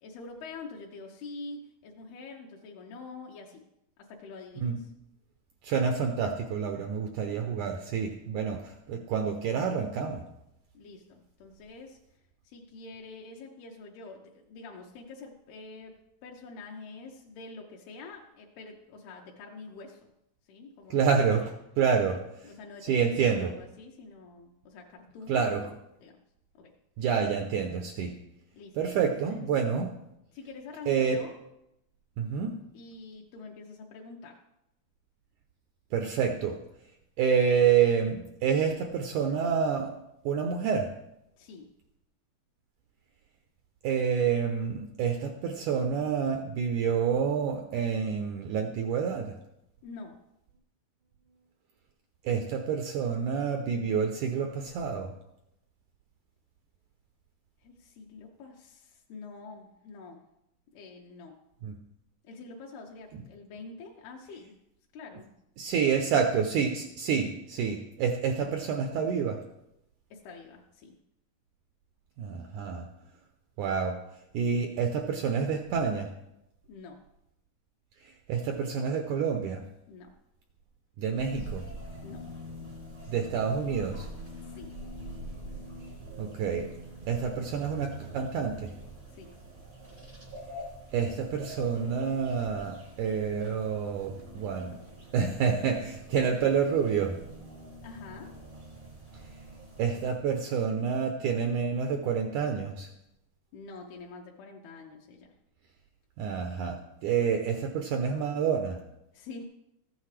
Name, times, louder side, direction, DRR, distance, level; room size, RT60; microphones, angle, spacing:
voice 1, 0.0-3.6 4.0-4.9 10.7-12.0 12.5-20.1 20.5-21.2 22.4-25.7 26.0-26.2 26.5-26.7 28.5-29.5 30.3-31.3 32.7-34.4 41.4-41.7 49.8-50.2 57.6-60.2 60.7-61.4 62.2-64.5 64.9-65.3 65.8-66.0 70.1-70.9 74.5-74.6 76.7-77.0 79.9-80.1 82.0-82.8 84.5-84.7 89.1-89.3 97.8-98.3 103.5-105.3 109.1-109.4, left 3 dB, 80° left, 0 dB, 2.8 m, -46 dB
voice 2, 5.6-10.2 20.9-22.2 22.8-23.5 25.3-25.6 27.0-28.2 28.8-29.9 30.9-31.2 32.2-32.6 35.9-36.6 37.2-40.0 40.3-40.9 43.8-49.4 52.2-55.1 61.6-61.8 65.6-69.4 72.2-72.9 73.6-74.0 74.3-76.1 78.0-79.6 81.0-81.6 83.1-84.1 86.2-86.8 87.1-88.7 90.9-94.8 95.1-97.2 99.8-102.9 106.2-108.8, right 6 dB, 90° right, 4 dB, 1.7 m, -28 dB
sound 1, 81.2-100.2, right 1 dB, 45° right, 0.6 m, -45 dB
14.5 x 9.6 x 3.3 m, 0.84 s
omnidirectional pair, 4.4 m